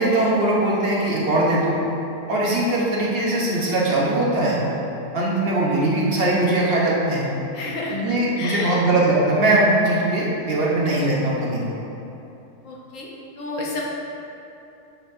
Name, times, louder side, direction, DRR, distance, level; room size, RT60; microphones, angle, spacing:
voice 1, 0.0-1.8 2.3-4.6 5.1-7.3 7.9-11.6, right 1 dB, 45° right, -5 dB, 1.0 m, -20 dB
voice 2, 7.5-8.9 12.6-13.1 13.4-13.8, left 2 dB, 60° left, -3 dB, 1.0 m, -30 dB
9.1 x 4.2 x 2.6 m, 2.9 s
omnidirectional pair, 1.7 m